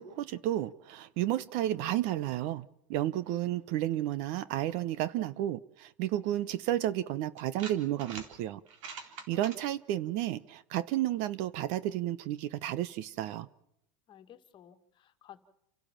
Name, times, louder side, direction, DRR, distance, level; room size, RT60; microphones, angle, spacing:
voice 1, 0.0-8.6 9.3-13.5, right 13 dB, 50° right, 0.9 m, -32 dB
sound 1, 6.6-6.7 7.4-8.3 8.7-9.6, right 5 dB, 70° right, 3.9 m, -43 dB
voice 2, 14.1-15.4, left 11 dB, 30° left, 2.0 m, -54 dB
30.0 x 12.0 x 7.4 m
supercardioid pair, 135°, 17 cm